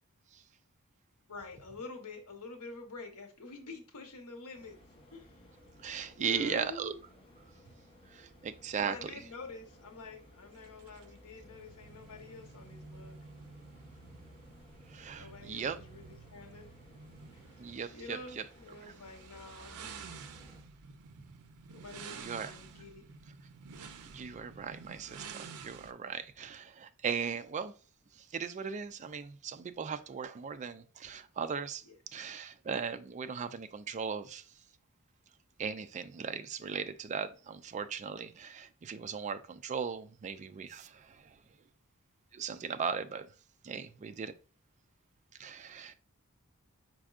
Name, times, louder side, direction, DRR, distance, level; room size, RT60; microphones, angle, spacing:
voice 1, 1.3-4.8 5.1-5.5 6.2-7.0 7.5-7.6 8.8-13.2 15.1-16.7 17.3-17.6 17.9-19.9 21.7-23.0 31.8-31.9, left 3 dB, 85° left, 1.0 m, -47 dB
sound 1, 4.5-20.6, equal, 25° left, 0.9 m, -58 dB
voice 2, 5.8-6.9 8.1-8.9 14.9-15.8 17.6-18.2 22.1-22.5 24.1-27.7 28.3-31.8 32.1-34.4 35.6-41.2 42.3-43.3 43.6-44.3 45.4-45.9, right 6 dB, 30° right, 0.3 m, -38 dB
sound 2, 10.6-25.9, right 5 dB, 85° right, 0.5 m, -51 dB
4.7 x 4.3 x 2.4 m
head